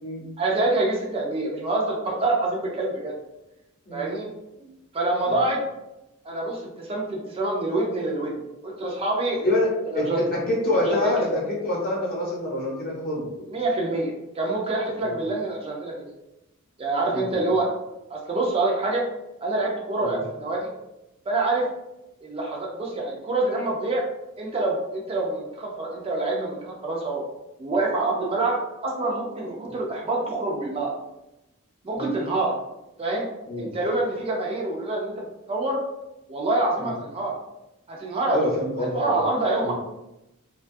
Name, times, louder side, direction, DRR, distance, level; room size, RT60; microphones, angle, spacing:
voice 1, 0.4-3.1 3.9-4.3 4.9-5.6 6.2-8.3 8.6-9.4 9.9-10.2 10.9-11.1 13.5-16.1 16.8-17.7 18.1-19.0 19.4-20.7 21.3-21.6 22.2-24.0 24.4-27.2 27.6-28.6 28.8-30.9 31.8-32.5 33.0-33.3 33.6-35.1 35.5-35.8 36.3-37.3 37.9-38.4 38.9-39.7, right 2 dB, 25° right, -2 dB, 0.4 m, -26 dB
voice 2, 9.9-13.4 15.0-15.2 17.1-17.5 20.0-20.2 32.0-32.2 33.5-33.7 36.8-36.9 38.3-39.2 39.6-39.7, left 1 dB, 40° left, -4 dB, 0.8 m, -26 dB
2.6 x 2.2 x 2.5 m, 0.92 s
head